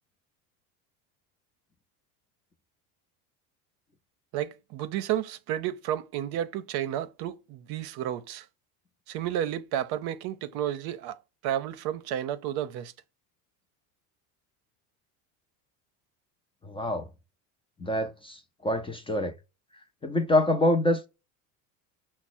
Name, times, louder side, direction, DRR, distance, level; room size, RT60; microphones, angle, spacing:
voice 1, 4.3-8.4 9.1-11.2 11.4-12.9, right 11 dB, 60° right, 0.6 m, -31 dB
voice 2, 16.6-17.1 17.8-19.3 20.0-21.1, left 1 dB, 10° left, 0.5 m, -26 dB
6.0 x 2.1 x 4.2 m
supercardioid pair, 105°, 44 cm